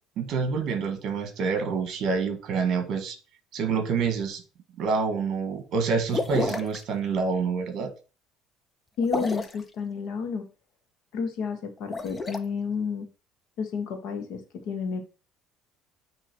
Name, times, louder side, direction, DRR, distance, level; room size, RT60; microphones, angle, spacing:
voice 1, 0.2-3.2 3.5-4.4 4.8-7.9, right 5 dB, 45° right, 7 dB, 1.5 m, -27 dB
sound 1, 6.1-6.8 9.0-9.6 11.8-12.4, left 2 dB, 15° left, 0.5 m, -30 dB
voice 2, 9.0-10.5 11.1-13.1 13.6-15.0, left 5 dB, 65° left, 6 dB, 1.5 m, -31 dB
8.7 x 3.1 x 4.4 m, 0.33 s
cardioid pair, 160°, 0 cm